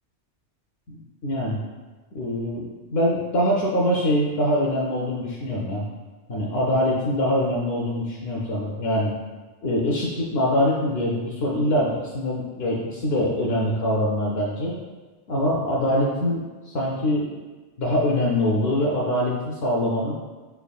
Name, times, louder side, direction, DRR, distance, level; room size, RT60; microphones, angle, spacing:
voice 1, 0.9-1.6 2.1-2.6 2.9-5.8 6.3-9.1 9.6-14.7 15.3-17.3 17.8-20.1, left 1 dB, 65° left, -3 dB, 0.7 m, -24 dB
4.4 x 3.4 x 2.3 m, 1.3 s
omnidirectional pair, 1.2 m